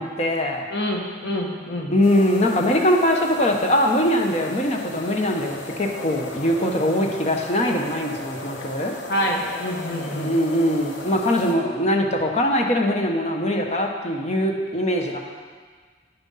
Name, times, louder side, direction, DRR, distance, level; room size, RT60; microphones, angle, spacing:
voice 1, 0.0-0.6 1.9-8.9 10.0-15.2, left 1 dB, 35° left, 1 dB, 1.0 m, -22 dB
voice 2, 0.7-1.9 7.2-7.4 9.1-10.3, equal, 60° left, -1 dB, 1.6 m, -27 dB
sound 1, 2.0-11.6, left 2 dB, 85° left, 1.1 m, -36 dB
9.7 x 7.4 x 5.7 m, 1.5 s
head